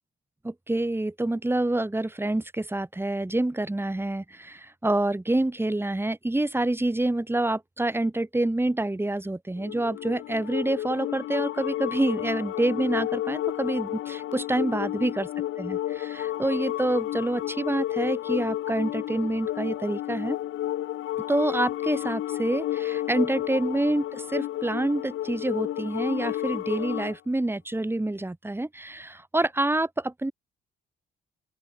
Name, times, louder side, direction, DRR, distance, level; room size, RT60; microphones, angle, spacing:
voice 1, 0.4-15.3 15.6-20.4 21.3-30.3, right 2 dB, 10° right, 7.8 m, -27 dB
sound 1, 9.6-27.2, left 13 dB, 80° left, 5.9 m, -31 dB
open air
cardioid pair, 90°, 20 cm